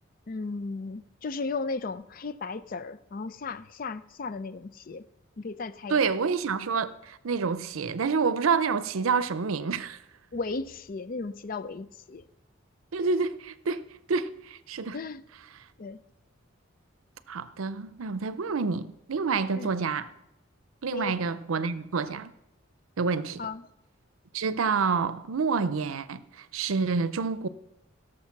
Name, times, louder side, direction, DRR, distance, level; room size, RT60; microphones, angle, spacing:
voice 1, 0.3-5.1 5.4-6.1 10.3-12.2 14.9-15.2 15.8-16.0 19.5-19.7 20.9-21.2 23.4-23.7, left 3 dB, 45° left, 0.5 m, -35 dB
voice 2, 5.9-10.0 12.9-15.0 17.3-20.1 20.8-22.3 23.0-23.4 24.3-27.5, right 5 dB, 85° right, 0.6 m, -28 dB
16.0 x 6.5 x 5.9 m
head